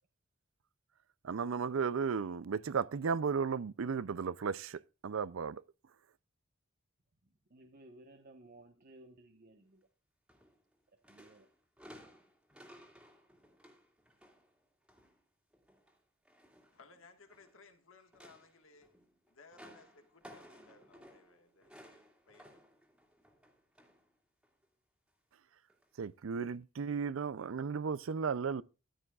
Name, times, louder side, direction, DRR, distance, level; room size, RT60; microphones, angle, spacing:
voice 1, 1.2-5.6 26.0-28.6, right 5 dB, 75° right, 0.5 m, -35 dB
voice 2, 7.2-9.9 10.9-11.5, right 1 dB, 50° right, 1.1 m, -58 dB
sound 1, 10.3-10.8 11.0-15.2 15.5-17.6 18.0-24.1 24.4-24.7 25.7-25.9 26.5-26.6, equal, 5° right, 2.2 m, -58 dB
voice 3, 16.7-18.9 19.3-22.6, left 3 dB, 80° left, 1.7 m, -61 dB
14.0 x 12.5 x 2.4 m
head